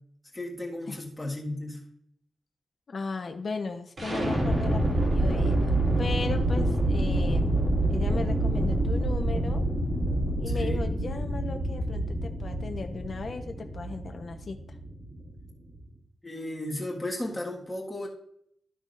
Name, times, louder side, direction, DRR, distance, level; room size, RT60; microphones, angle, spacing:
voice 1, 0.3-1.8 6.6-6.7 10.5-10.9 16.2-18.1, left 1 dB, 10° left, -2 dB, 1.7 m, -34 dB
voice 2, 2.9-7.6 7.9-9.7 10.4-14.6, left 4 dB, 40° left, 5 dB, 0.9 m, -36 dB
sound 1, 4.0-15.8, right 1 dB, 40° right, 2.4 m, -27 dB
12.5 x 6.1 x 2.5 m, 0.70 s
wide cardioid pair, 175°, 0 cm